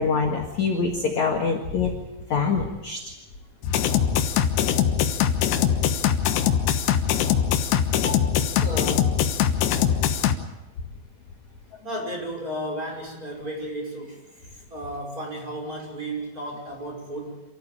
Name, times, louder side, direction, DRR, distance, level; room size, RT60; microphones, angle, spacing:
voice 1, 0.0-1.9 2.3-3.0, left 5 dB, 50° left, 3 dB, 2.4 m, -24 dB
sound 1, 3.6-10.3, left 9 dB, 70° left, 3.2 m, -22 dB
voice 2, 7.9-8.3 8.6-9.2 11.8-14.2 14.7-17.4, right 1 dB, 20° right, 0 dB, 6.1 m, -33 dB
28.0 x 14.0 x 8.9 m, 1.1 s
omnidirectional pair, 5.4 m